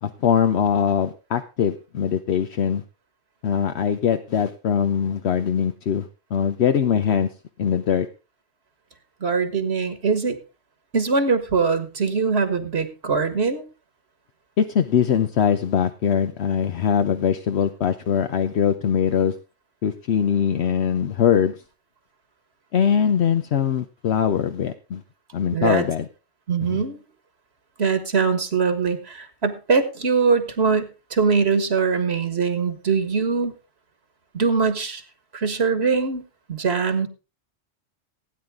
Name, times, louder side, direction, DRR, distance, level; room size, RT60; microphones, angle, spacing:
voice 1, 0.0-2.8 3.4-7.3 7.6-8.1 14.6-19.3 19.8-21.5 22.7-25.0 25.3-26.1 26.7-26.8, left 8 dB, 70° left, 8 dB, 1.0 m, -22 dB
voice 2, 9.2-10.4 10.9-13.6 25.5-25.9 26.5-27.0 27.8-33.5 34.3-35.0 35.3-36.2 36.5-37.1, right 5 dB, 65° right, 10 dB, 1.7 m, -22 dB
16.5 x 9.6 x 3.6 m, 0.31 s
omnidirectional pair, 1.2 m